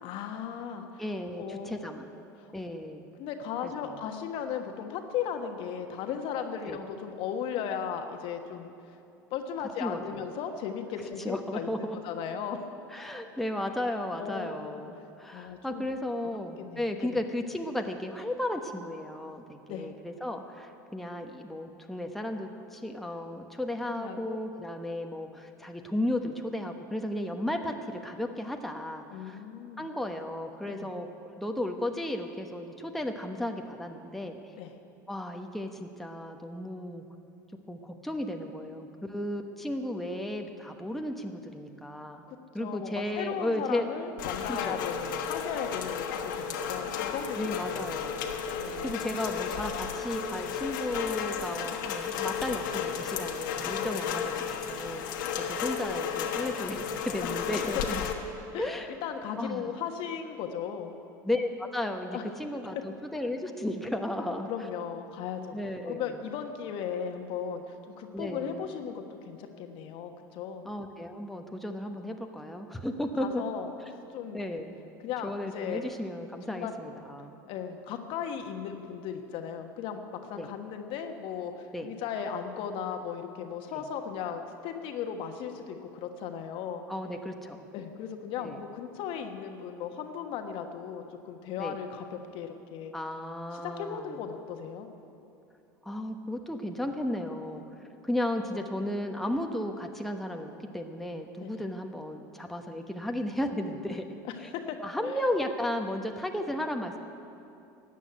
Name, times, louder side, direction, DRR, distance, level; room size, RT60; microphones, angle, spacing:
voice 1, 0.0-1.0 1.4-2.5 3.2-8.7 9.3-12.7 14.2-14.8 15.3-15.9 16.3-17.2 19.7-19.9 24.0-24.4 29.1-29.8 30.7-30.9 34.5-34.7 42.3-46.0 46.3-47.4 47.8-48.1 48.6-49.0 53.8-54.0 57.2-57.3 58.5-58.7 59.0-61.0 62.1-62.2 62.7-62.8 64.5-65.6 65.8-70.7 73.2-73.7 74.1-74.4 75.0-75.9 76.5-76.7 77.5-80.0 80.3-86.8 87.7-92.9 93.5-94.9 101.4-101.5 104.2-105.1, left 7 dB, 55° left, 5 dB, 1.3 m, -37 dB
voice 2, 1.0-2.1 2.5-3.0 3.6-4.0 6.7-6.8 9.6-10.2 11.2-12.0 12.9-29.4 29.8-31.1 31.4-34.4 35.1-37.0 37.7-42.3 42.5-43.9 44.5-44.8 47.4-48.2 48.6-55.0 55.5-58.0 58.6-59.0 59.4-59.7 61.2-64.7 65.5-66.2 68.1-68.6 70.6-73.4 74.3-74.8 75.2-77.3 80.4-80.5 81.7-81.9 83.7-83.8 86.9-87.7 88.4-88.6 91.6-91.8 92.9-94.2 95.8-97.6 98.0-104.0 104.4-104.5 104.8-107.0, left 1 dB, ahead, 3 dB, 1.1 m, -34 dB
Rain, 44.2-58.1, left 7 dB, 75° left, 1.3 m, -33 dB
13.5 x 8.3 x 9.3 m, 2.7 s
hypercardioid pair, 85°, 11 cm